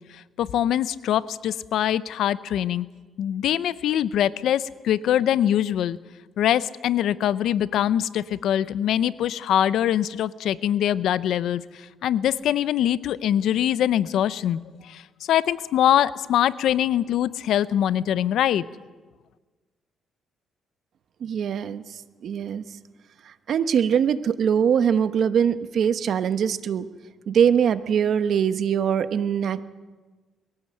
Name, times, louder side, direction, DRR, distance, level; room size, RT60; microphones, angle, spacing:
voice 1, 0.1-2.9 3.2-6.0 6.4-15.0 15.3-18.6, left 11 dB, 75° left, 17 dB, 0.7 m, -23 dB
voice 2, 21.2-21.8 22.2-22.6 23.5-26.9 27.3-29.6, right 8 dB, 65° right, 12 dB, 1.0 m, -22 dB
22.0 x 17.5 x 7.8 m, 1.3 s
cardioid pair, 90°, 0 cm